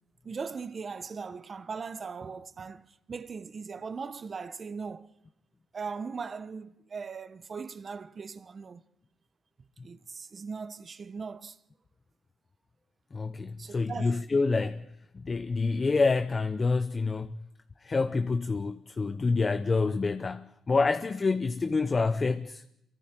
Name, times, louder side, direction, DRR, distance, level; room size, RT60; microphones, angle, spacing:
voice 1, 0.2-5.1 5.7-8.8 9.8-11.6 13.6-14.2 14.6-14.7, right 5 dB, 40° right, 1.1 m, -39 dB
voice 2, 13.1-14.9 15.1-17.4 17.8-22.6, left 4 dB, 30° left, 0.7 m, -27 dB
27.5 x 23.0 x 4.6 m
cardioid pair, 90°, 0 cm